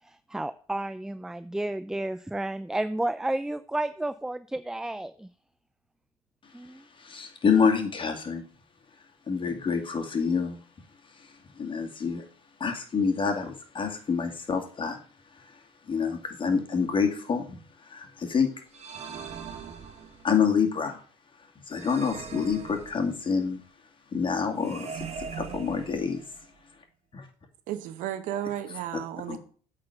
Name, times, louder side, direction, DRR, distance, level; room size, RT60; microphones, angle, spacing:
voice 1, 0.3-5.3 6.5-6.8, right 1 dB, 5° right, 0.4 m, -31 dB
voice 2, 7.0-8.4 9.3-10.6 11.6-12.2 12.6-15.0 15.9-17.6 17.9-18.5 20.2-21.0 21.7-23.6 24.1-25.1 25.3-26.2 27.1-27.2 29.3-29.4, left 6 dB, 35° left, 2.2 m, -27 dB
sound 1, 18.7-20.4 21.7-23.4 24.6-26.4, right 6 dB, 50° right, 1.4 m, -41 dB
voice 3, 27.7-29.4, right 11 dB, 70° right, 1.0 m, -33 dB
8.6 x 4.2 x 6.9 m
supercardioid pair, 75°, 14 cm